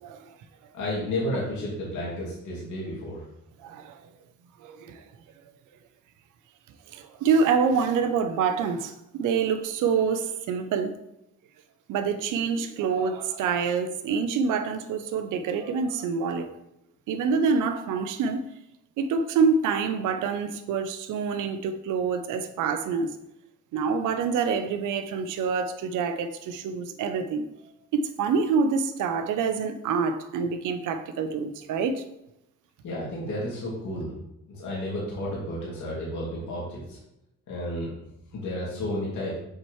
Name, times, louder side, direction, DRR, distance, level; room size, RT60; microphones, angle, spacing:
voice 1, 0.7-3.2 32.8-34.1 34.5-37.0 37.5-37.9 38.3-39.4, left 1 dB, 75° left, 2.5 m, -32 dB
voice 2, 3.6-4.0 4.6-5.0 6.9-11.0 11.9-16.6 17.1-18.4 19.0-23.1 23.7-27.5 27.9-32.0, right 5 dB, 85° right, 0.7 m, -26 dB
7.4 x 4.5 x 3.2 m
cardioid pair, 90°, 30 cm